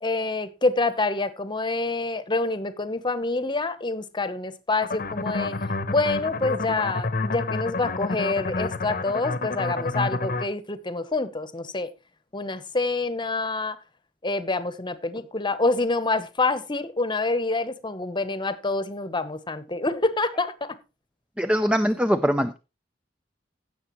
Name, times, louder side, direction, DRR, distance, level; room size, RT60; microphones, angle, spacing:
voice 1, 0.0-5.6 5.9-11.9 12.3-13.8 14.2-20.8, left 3 dB, 25° left, 0.9 m, -27 dB
sound 1, 4.8-10.5, left 3 dB, 50° left, 0.9 m, -29 dB
voice 2, 21.4-22.6, equal, 5° right, 0.4 m, -22 dB
16.5 x 6.8 x 3.1 m
head